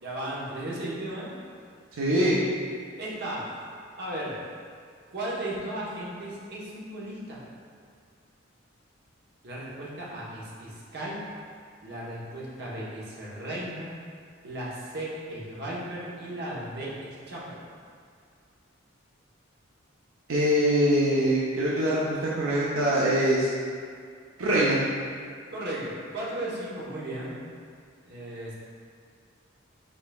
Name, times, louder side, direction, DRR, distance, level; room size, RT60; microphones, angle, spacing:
voice 1, 0.0-1.3 3.0-3.5 3.9-4.4 5.1-7.4 9.4-11.2 11.8-13.9 14.4-17.6 25.5-27.4 28.0-28.5, right 1 dB, 55° right, -6 dB, 1.0 m, -35 dB
voice 2, 2.0-2.4 20.3-23.5 24.4-24.8, right 1 dB, 80° right, -6 dB, 0.6 m, -23 dB
5.4 x 4.0 x 2.3 m, 2.2 s
head